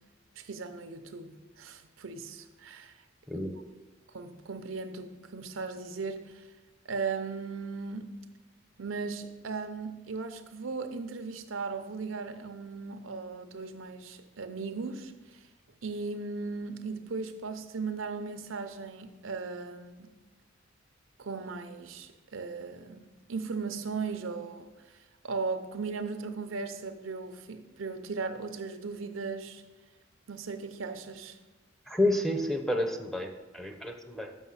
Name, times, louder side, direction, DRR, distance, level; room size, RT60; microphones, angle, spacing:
voice 1, 0.4-3.0 4.1-6.5 6.8-8.1 8.8-15.4 15.8-20.1 21.2-25.0 25.2-29.6 30.3-31.4, right 4 dB, 85° right, 0.6 m, -37 dB
voice 2, 3.3-3.6 31.9-34.4, left 1 dB, ahead, 0.6 m, -30 dB
6.3 x 6.2 x 5.6 m
head